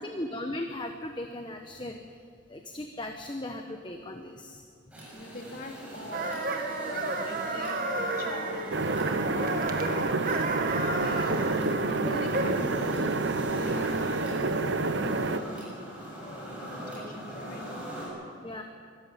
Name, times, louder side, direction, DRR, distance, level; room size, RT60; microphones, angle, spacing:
voice 1, 0.0-2.0 2.5-4.6 10.3-10.4 18.4-18.6, left 1 dB, 25° left, 4 dB, 1.1 m, -37 dB
sound 1, 4.9-18.1, right 1 dB, 5° right, 6.7 m, -41 dB
voice 2, 5.1-9.5 9.9-10.2 10.6-11.4 11.8-13.2 13.5-15.6 16.2-17.7 18.2-18.4, left 1 dB, 45° left, 0 dB, 2.9 m, -42 dB
sound 2, 6.1-12.6, right 2 dB, 45° right, 1.7 m, -32 dB
sound 3, 8.7-15.4, right 3 dB, 60° right, 0.9 m, -29 dB
24.0 x 14.0 x 9.2 m, 2.3 s
head